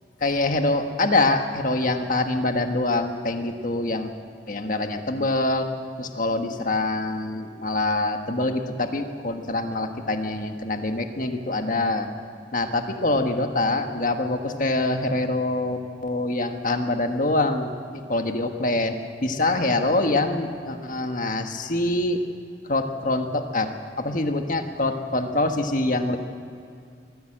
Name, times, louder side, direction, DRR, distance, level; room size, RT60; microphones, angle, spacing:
voice 1, 0.2-4.1 4.5-5.7 6.0-12.1 12.5-18.9 19.2-22.2 22.7-23.7 24.0-26.2, left 2 dB, 45° left, 5 dB, 1.5 m, -25 dB
22.5 x 15.0 x 7.7 m, 2.4 s
head